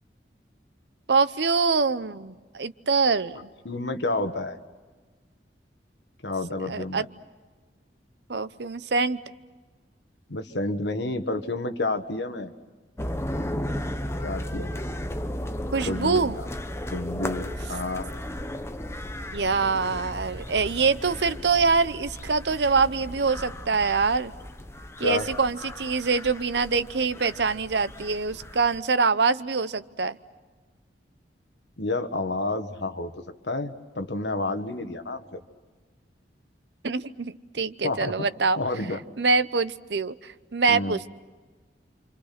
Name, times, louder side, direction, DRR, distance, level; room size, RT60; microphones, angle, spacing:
voice 1, 1.1-3.5 6.6-7.1 8.3-9.2 15.7-16.4 19.3-24.3 25.0-30.2 36.8-38.6 39.2-41.1, right 4 dB, 70° right, 14 dB, 0.8 m, -24 dB
voice 2, 3.6-4.6 6.2-7.1 10.3-12.5 14.2-14.7 15.8-16.5 16.9-18.1 25.0-25.3 31.8-33.1 33.4-35.4 37.8-38.3 38.6-39.0 40.7-41.0, left 2 dB, 75° left, 7 dB, 1.6 m, -30 dB
sound 1, 13.0-28.8, left 1 dB, 15° left, 1.0 m, -35 dB
29.0 x 26.0 x 6.0 m, 1.3 s
head